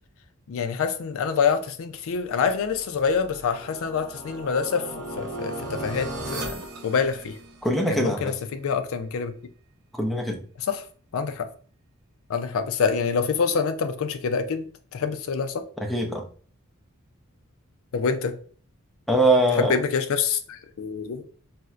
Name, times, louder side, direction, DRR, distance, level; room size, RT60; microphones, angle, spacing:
voice 1, 0.5-7.4 7.9-9.3 10.7-10.8 11.1-11.5 12.3-14.7 14.9-15.6 17.9-18.3 19.6-21.3, left 6 dB, 65° left, 0.4 m, -26 dB
sound 1, 2.6-7.8, right 1 dB, 80° right, 0.6 m, -36 dB
voice 2, 7.6-8.3 9.9-10.4 15.8-16.2 19.1-19.8, right 1 dB, ahead, 0.5 m, -22 dB
4.1 x 2.1 x 2.4 m
head